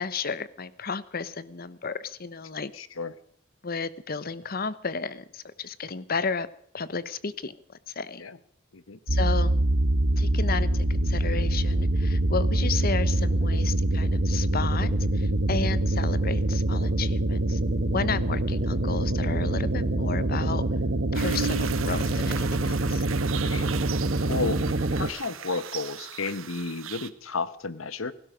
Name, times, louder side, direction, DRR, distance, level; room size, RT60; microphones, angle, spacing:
voice 1, 0.0-2.7 3.6-6.5 6.7-7.5 7.9-8.2 9.1-9.6 10.2-17.6 17.9-20.6 21.1-23.1, left 5 dB, 45° left, 16 dB, 0.9 m, -33 dB
voice 2, 2.7-3.1 8.2-8.4 8.7-9.0 23.4-23.7 24.3-24.6 24.9-28.1, left 4 dB, 90° left, 15 dB, 1.2 m, -32 dB
sound 1, 9.1-25.1, right 1 dB, 60° right, 1.2 m, -25 dB
sound 2, 21.1-27.1, right 8 dB, 85° right, 1.1 m, -36 dB
17.5 x 16.0 x 5.1 m, 0.67 s
head